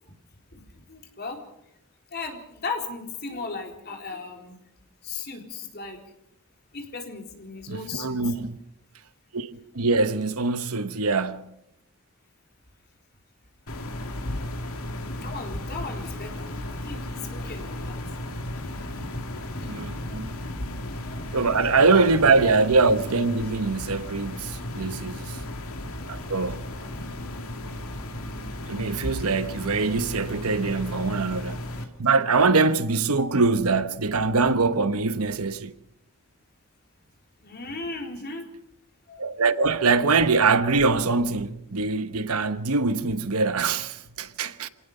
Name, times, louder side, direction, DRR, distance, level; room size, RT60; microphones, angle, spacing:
voice 1, 0.9-1.4 2.1-4.6 5.0-6.0 6.7-8.4 15.0-18.0 18.5-18.9 19.4-19.9 20.2-20.5 21.0-22.1 24.8-25.0 25.3-25.4 26.7-26.8 28.7-28.8 30.3-30.4 30.7-30.8 37.4-38.4 39.1-39.2, left 3 dB, 45° left, 4.1 m, -37 dB
voice 2, 7.7-8.6 9.3-11.6 19.7-20.4 21.3-25.2 26.1-26.6 28.7-31.6 32.0-35.7 39.2-44.7, right 4 dB, 85° right, 1.1 m, -23 dB
room tone medium quiet Pablo's condo, 13.7-31.8, left 1 dB, 75° left, 2.5 m, -35 dB
27.0 x 18.5 x 5.5 m
head